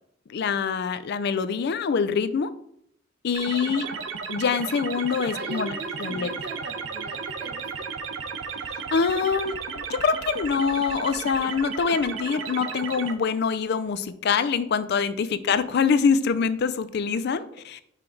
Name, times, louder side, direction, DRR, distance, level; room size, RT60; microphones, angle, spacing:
voice 1, 0.3-2.5 3.2-3.9 4.3-5.7 6.0-6.3 8.9-17.8, left 5 dB, 60° left, 14 dB, 0.4 m, -25 dB
sound 1, 3.3-13.1, right 5 dB, 80° right, 0.6 m, -34 dB
voice 2, 3.6-4.0 5.3-7.9 15.3-15.6 17.3-17.5, right 1 dB, 60° right, 5 dB, 0.9 m, -40 dB
5.8 x 4.5 x 3.8 m, 0.71 s
head